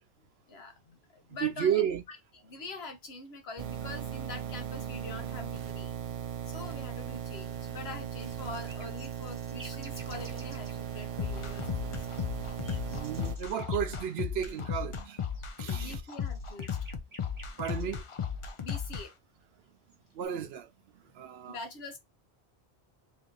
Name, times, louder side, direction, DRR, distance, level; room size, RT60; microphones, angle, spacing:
voice 1, 0.2-2.2 2.4-5.9 6.5-12.0 15.8-16.8 18.6-19.1 21.5-22.0, left 3 dB, 75° left, 1.2 m, -44 dB
voice 2, 1.4-2.0 12.9-15.2 15.6-16.0 17.6-18.0 20.2-20.7 21.2-21.6, right 9 dB, 75° right, 0.8 m, -32 dB
sound 1, 3.6-13.4, right 9 dB, 45° right, 0.4 m, -38 dB
sound 2, 8.1-10.7 12.2-14.0 15.2-18.0 19.6-20.3, right 1 dB, 20° right, 0.8 m, -52 dB
sound 3, 11.2-19.0, left 7 dB, 45° left, 0.4 m, -35 dB
3.2 x 2.7 x 3.7 m
omnidirectional pair, 1.1 m